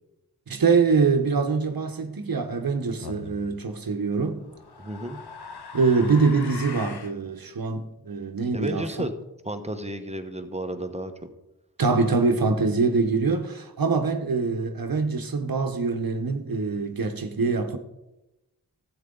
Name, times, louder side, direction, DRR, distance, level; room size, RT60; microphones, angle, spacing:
voice 1, 0.5-4.4 5.7-9.1 11.8-17.8, right 4 dB, 65° right, 1.1 m, -24 dB
sound 1, 3.0-3.4 4.4-7.2, left 5 dB, 80° left, 1.1 m, -40 dB
voice 2, 4.8-5.2 8.5-9.1 9.4-11.1, right 1 dB, 15° right, 1.1 m, -32 dB
12.5 x 8.1 x 3.9 m
cardioid pair, 40°, 39 cm